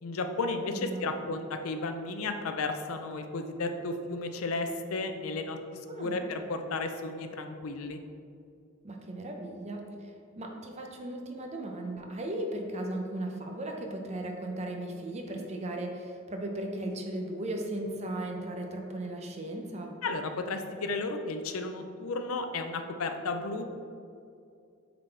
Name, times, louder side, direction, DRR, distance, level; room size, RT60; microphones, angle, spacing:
voice 1, 0.0-8.0 20.0-23.6, left 3 dB, 85° left, 7 dB, 0.5 m, -33 dB
voice 2, 0.7-1.1 5.9-6.2 8.8-20.0, right 1 dB, 30° right, 2 dB, 0.6 m, -36 dB
7.4 x 3.9 x 3.3 m, 2.4 s
head